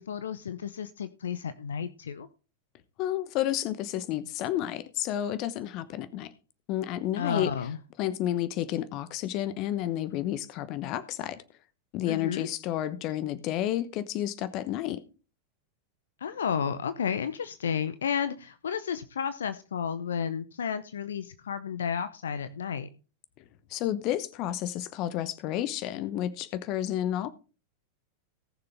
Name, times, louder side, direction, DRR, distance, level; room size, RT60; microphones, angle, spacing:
voice 1, 0.0-2.3 7.2-7.8 12.1-12.5 16.2-22.9, left 7 dB, 65° left, 0.8 m, -32 dB
voice 2, 3.0-6.3 6.7-7.5 8.0-11.4 11.9-15.0 23.7-27.3, left 12 dB, 40° left, 1.0 m, -31 dB
18.5 x 6.8 x 3.5 m
figure-of-eight pair, 90°, 0 cm